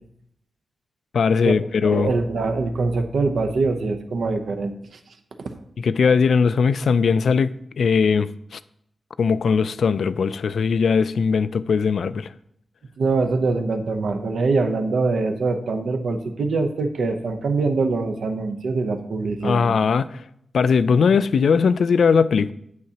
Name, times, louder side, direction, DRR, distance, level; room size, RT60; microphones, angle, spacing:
voice 1, 1.1-2.1 5.8-7.5 7.8-8.6 9.2-12.3 19.4-20.2 20.5-22.5, left 5 dB, 65° left, 0.3 m, -19 dB
voice 2, 1.8-4.8 5.4-5.6 13.0-19.8, right 3 dB, 70° right, 0.7 m, -23 dB
9.4 x 8.2 x 2.9 m
wide cardioid pair, 170°, 0 cm